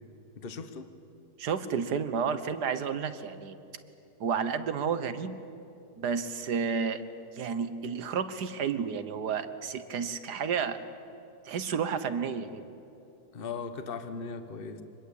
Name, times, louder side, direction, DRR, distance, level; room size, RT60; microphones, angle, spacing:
voice 1, 0.4-0.9 13.3-14.8, left 5 dB, 40° left, 9 dB, 1.3 m, -38 dB
voice 2, 1.4-3.6 4.2-5.4 6.0-7.0 7.3-10.8 11.4-12.6, right 6 dB, 85° right, 11 dB, 1.7 m, -31 dB
25.0 x 21.0 x 8.4 m, 2.9 s
omnidirectional pair, 1.7 m